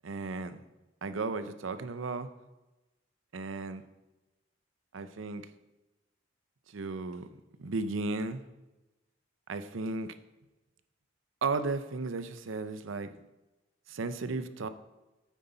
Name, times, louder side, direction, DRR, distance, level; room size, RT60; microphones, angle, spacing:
voice 1, 0.0-0.6 1.0-2.3 3.3-3.8 4.9-5.5 6.7-7.3 7.6-8.4 9.5-10.2 11.4-13.1 13.9-14.7, right 3 dB, 85° right, 11 dB, 0.7 m, -34 dB
9.2 x 8.3 x 4.0 m, 1.1 s
head